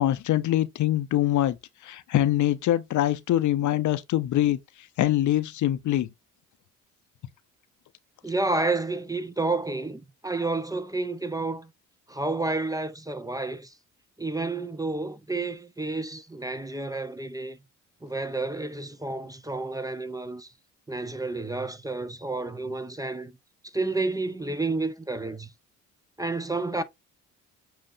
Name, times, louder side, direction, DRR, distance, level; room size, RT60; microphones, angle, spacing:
voice 1, 0.0-1.6 1.8-4.6 5.0-6.1, left 13 dB, 55° left, 0.6 m, -24 dB
voice 2, 8.2-11.7 12.1-13.7 14.2-17.6 18.0-20.5 20.9-23.3 23.7-25.5 26.2-26.8, right 3 dB, 10° right, 0.6 m, -30 dB
7.5 x 2.6 x 2.6 m
hypercardioid pair, 55°, 36 cm